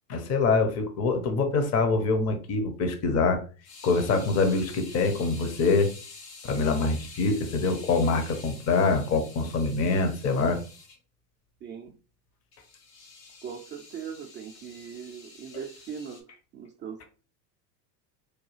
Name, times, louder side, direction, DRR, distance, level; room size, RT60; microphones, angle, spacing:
voice 1, 0.1-3.4 3.8-5.9 6.5-10.6, left 3 dB, 30° left, 7 dB, 0.7 m, -25 dB
sound 1, 3.6-11.0 12.5-16.2, left 4 dB, 90° left, 1.4 m, -48 dB
voice 2, 13.4-16.2 16.5-17.0, right 7 dB, 25° right, 1 dB, 0.4 m, -40 dB
4.6 x 2.3 x 3.1 m, 0.36 s
supercardioid pair, 105°, 49 cm